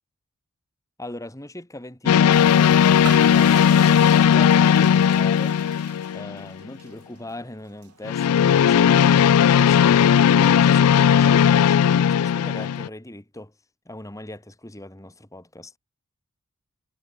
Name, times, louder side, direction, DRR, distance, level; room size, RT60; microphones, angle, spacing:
voice 1, 1.0-2.8 3.3-5.6 6.1-9.2 9.5-13.5 13.9-15.7, left 1 dB, 15° left, 2.3 m, -39 dB
sound 1, 2.1-6.5 8.0-12.9, left 8 dB, 80° left, 0.4 m, -17 dB
sound 2, 2.3-9.0, right 9 dB, 85° right, 1.0 m, -43 dB
head